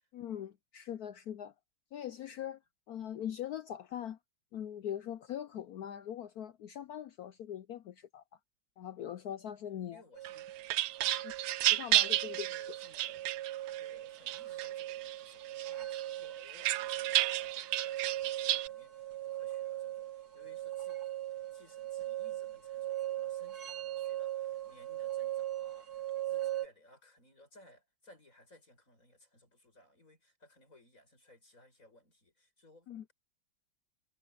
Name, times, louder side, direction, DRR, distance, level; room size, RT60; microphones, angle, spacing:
voice 1, 0.1-1.5 1.9-2.6 2.9-4.2 4.5-8.2 8.8-10.0 11.2-11.3 11.7-12.5 32.9-33.0, left 10 dB, 75° left, 0.9 m, -41 dB
voice 2, 9.9-10.5 11.0-11.3 12.1-13.3 13.8-21.0 21.5-33.1, left 1 dB, 40° left, 8.0 m, -61 dB
sound 1, 10.2-26.7, right 14 dB, 50° right, 1.9 m, -39 dB
sound 2, 10.2-13.8 14.3-15.2 15.6-18.7, right 14 dB, 75° right, 1.4 m, -32 dB
omnidirectional pair, 2.2 m